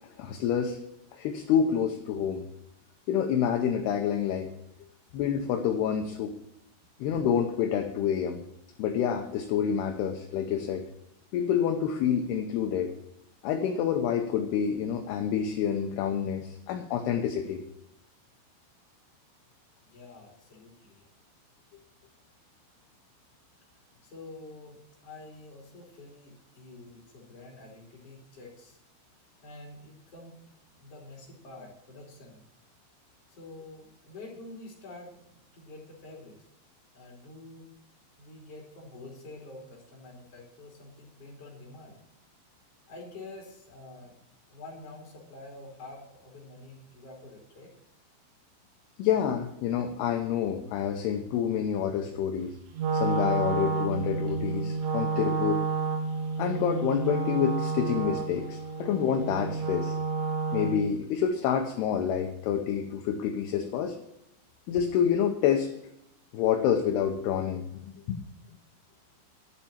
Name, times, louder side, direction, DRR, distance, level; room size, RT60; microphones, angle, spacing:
voice 1, 0.2-0.8 1.1-2.5 3.1-4.5 5.1-6.3 7.0-8.4 8.8-10.8 11.3-12.9 13.4-17.6 49.0-52.6 52.9-55.6 56.4-59.9 60.5-64.0 64.7-65.7 66.3-68.2, left 8 dB, 75° left, 4 dB, 2.5 m, -28 dB
voice 2, 19.8-21.0 24.0-28.8 29.4-30.3 30.7-32.4 33.3-36.4 36.9-37.7 38.2-42.0 42.9-44.1 44.5-47.7, left 2 dB, 35° left, -1 dB, 3.7 m, -47 dB
Wind instrument woodwind instrument, 52.7-61.0, right 4 dB, 80° right, 4.0 m, -30 dB
12.0 x 7.3 x 7.2 m, 0.82 s
omnidirectional pair, 5.5 m